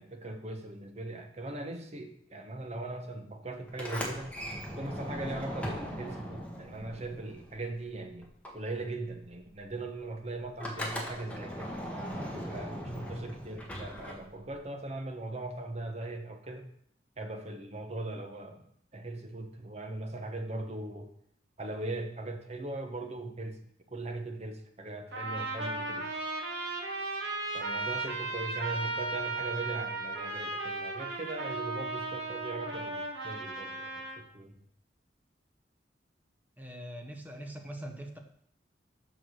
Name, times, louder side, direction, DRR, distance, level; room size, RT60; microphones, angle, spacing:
voice 1, 0.0-4.3 4.7-8.3 8.5-11.8 12.3-16.7 17.2-18.7 18.9-21.1 21.6-23.6 23.9-26.1 27.5-34.6, right 2 dB, 40° right, 5 dB, 1.2 m, -39 dB
Sliding door, 3.7-8.0 8.2-14.6, equal, 10° left, 1.5 m, -39 dB
Trumpet, 25.1-34.2, right 2 dB, 75° right, 1.8 m, -36 dB
voice 2, 36.6-38.2, right 1 dB, 10° right, 3 dB, 1.2 m, -42 dB
7.2 x 6.2 x 6.4 m, 0.68 s
head